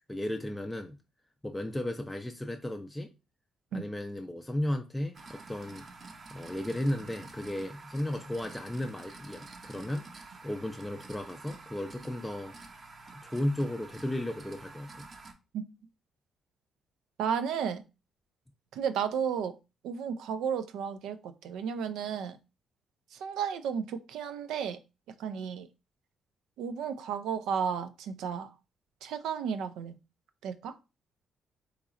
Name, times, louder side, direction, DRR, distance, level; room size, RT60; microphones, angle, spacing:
voice 1, 0.1-1.0 1.4-3.1 3.7-5.9 6.3-10.1 10.4-12.5 13.1-15.1, left 1 dB, 10° left, 0.4 m, -34 dB
sound 1, 5.1-15.3, right 3 dB, 40° right, 0.6 m, -49 dB
voice 2, 17.2-17.8 18.7-19.5 19.8-22.4 23.1-24.8 25.2-25.7 26.6-28.5 29.0-30.0 30.4-30.7, right 7 dB, 90° right, 0.4 m, -33 dB
3.9 x 2.9 x 2.4 m
cardioid pair, 95°, 0 cm